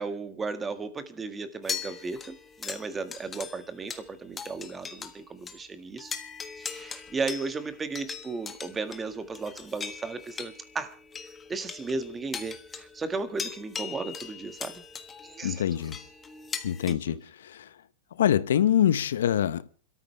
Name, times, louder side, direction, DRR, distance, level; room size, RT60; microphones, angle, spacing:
voice 1, 0.0-6.1 6.6-11.0 11.5-14.8 15.2-15.6 16.9-17.2, right 4 dB, 15° right, 1.7 m, -35 dB
sound 1, 1.6-5.2 5.5-5.6 6.0-16.9, left 6 dB, 15° left, 1.4 m, -40 dB
voice 2, 15.4-16.0 16.6-17.7 18.1-19.7, left 10 dB, 85° left, 0.7 m, -25 dB
27.0 x 13.0 x 3.3 m
supercardioid pair, 135°, 0 cm